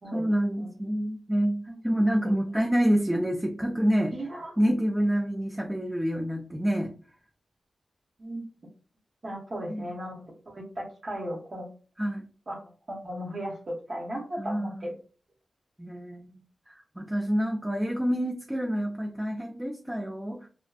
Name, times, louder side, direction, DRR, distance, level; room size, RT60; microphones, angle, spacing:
voice 1, 0.1-4.1 4.6-6.9 9.7-9.9 12.0-12.2 14.4-14.8 15.8-20.5, equal, 15° right, 1 dB, 0.4 m, -27 dB
voice 2, 4.1-4.5 8.2-8.4 9.2-11.7 12.5-14.9, equal, 55° right, -1 dB, 0.7 m, -36 dB
2.5 x 2.2 x 2.2 m, 0.38 s
cardioid pair, 45°, 0 cm